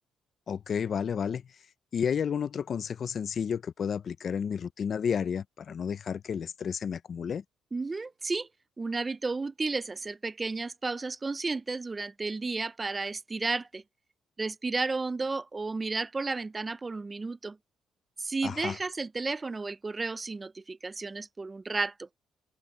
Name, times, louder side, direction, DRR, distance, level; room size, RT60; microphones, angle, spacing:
voice 1, 0.5-1.6 1.9-7.4 18.4-18.8, left 7 dB, 50° left, 0.6 m, -31 dB
voice 2, 7.7-8.5 8.8-13.8 14.4-17.6 18.2-22.1, right 3 dB, 25° right, 0.6 m, -33 dB
open air
cardioid pair, 90°, 0 cm